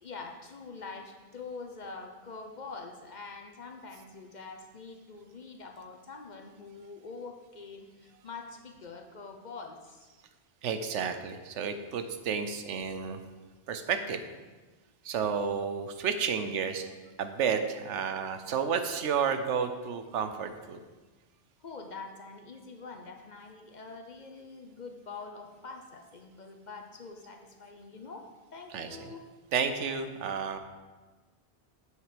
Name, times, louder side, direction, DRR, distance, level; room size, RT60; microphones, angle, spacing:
voice 1, 0.0-10.1 21.6-29.3, left 4 dB, 45° left, 4 dB, 0.8 m, -45 dB
voice 2, 10.6-13.2 13.7-14.2 15.0-16.9 17.2-20.8 28.7-28.9 29.5-30.6, right 6 dB, 90° right, 8 dB, 1.1 m, -31 dB
7.8 x 6.5 x 5.1 m, 1.3 s
omnidirectional pair, 1.2 m